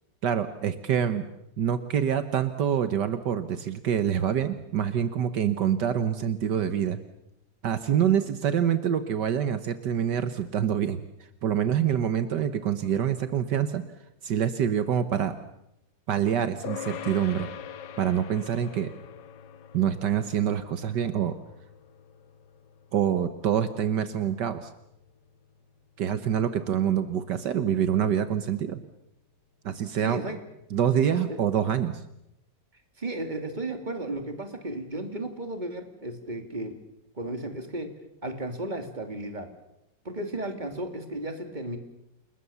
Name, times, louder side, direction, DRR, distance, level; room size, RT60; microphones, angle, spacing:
voice 1, 0.2-1.3 1.6-7.0 7.6-11.0 11.4-13.8 14.2-15.3 16.1-17.5 18.0-18.9 19.7-21.4 22.9-24.7 26.0-28.8 29.7-30.2 30.7-32.0, right 9 dB, 75° right, 10 dB, 1.7 m, -26 dB
sound 1, 16.6-26.3, left 8 dB, 80° left, 1.8 m, -44 dB
voice 2, 30.0-30.4 31.1-31.4 33.0-36.7 37.2-37.9 38.2-39.5 40.0-41.8, right 1 dB, 25° right, 6 dB, 2.9 m, -34 dB
29.5 x 20.5 x 7.0 m, 0.82 s
omnidirectional pair, 1.9 m